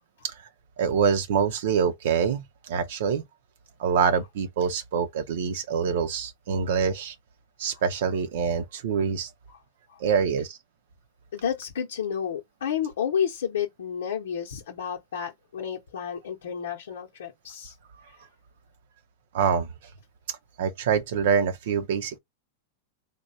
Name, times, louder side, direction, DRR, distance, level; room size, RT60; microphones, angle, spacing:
voice 1, 0.8-3.2 3.8-7.2 7.6-9.3 10.0-10.6 19.3-19.7 20.3-22.2, right 6 dB, 70° right, 0.6 m, -25 dB
voice 2, 11.3-17.7, left 8 dB, 80° left, 0.8 m, -31 dB
3.3 x 2.2 x 4.0 m
hypercardioid pair, 110°, 0 cm